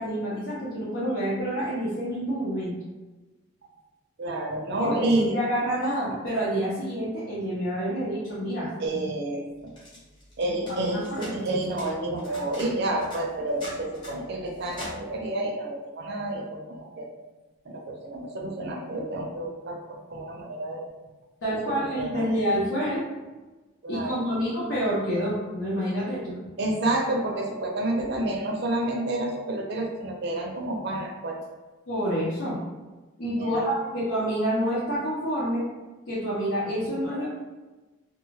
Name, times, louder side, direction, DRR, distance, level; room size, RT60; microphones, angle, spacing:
voice 1, 0.0-2.7 4.8-9.0 10.7-11.4 21.4-23.0 23.9-26.4 31.9-32.6 33.2-35.6 36.1-37.3, equal, 65° left, -9 dB, 0.8 m, -28 dB
voice 2, 4.2-5.4 8.8-9.4 10.4-17.1 17.6-20.9 21.5-22.3 23.8-24.2 26.6-31.4 33.4-33.7 36.7-37.3, right 1 dB, 55° right, 1 dB, 0.5 m, -29 dB
sound 1, 9.7-15.2, equal, 25° left, 0.8 m, -43 dB
2.4 x 2.3 x 3.1 m, 1.2 s
head